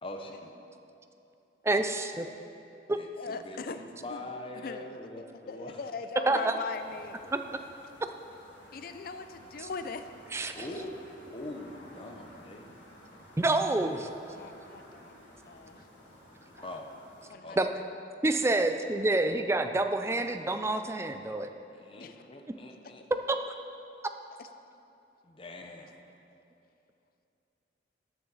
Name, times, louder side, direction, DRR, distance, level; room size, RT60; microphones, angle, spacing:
voice 1, 0.0-0.5 2.9-5.8 10.5-10.9 11.3-12.7 16.6-16.9 17.4-17.6 21.7-23.0 25.2-26.0, left 1 dB, 30° left, 3 dB, 0.8 m, -43 dB
voice 2, 1.7-2.2 2.9-3.0 6.3-6.5 7.3-7.4 9.6-9.7 10.3-10.5 13.4-14.1 17.6-17.7 18.2-21.5 23.3-23.4, right 2 dB, 15° right, 7 dB, 0.4 m, -27 dB
voice 3, 3.2-4.3 4.6-5.0 5.5-7.2 8.7-10.0 13.7-13.8 14.3-15.8 17.3-17.8 18.5-18.7 22.0-22.3 24.4-24.5, left 4 dB, 50° left, 9 dB, 0.4 m, -40 dB
sound 1, 6.7-17.3, left 1 dB, 80° left, 2.5 m, -53 dB
13.0 x 6.8 x 4.0 m, 2.7 s
head